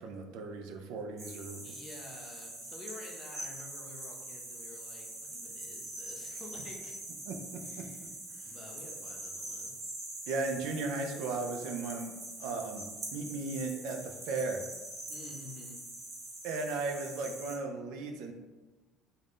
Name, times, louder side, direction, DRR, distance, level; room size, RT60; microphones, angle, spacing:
voice 1, 0.0-1.6 7.3-7.8 10.3-12.1 12.4-14.0 14.2-14.6 16.4-18.3, right 3 dB, 75° right, 4 dB, 0.3 m, -36 dB
sound 1, 1.2-17.6, right 1 dB, 35° right, 0.9 m, -44 dB
voice 2, 1.3-7.0 7.6-8.1 8.4-9.9 15.1-15.8, left 2 dB, 35° left, 1 dB, 0.6 m, -50 dB
2.5 x 2.1 x 3.4 m, 1.2 s
supercardioid pair, 110°, 0 cm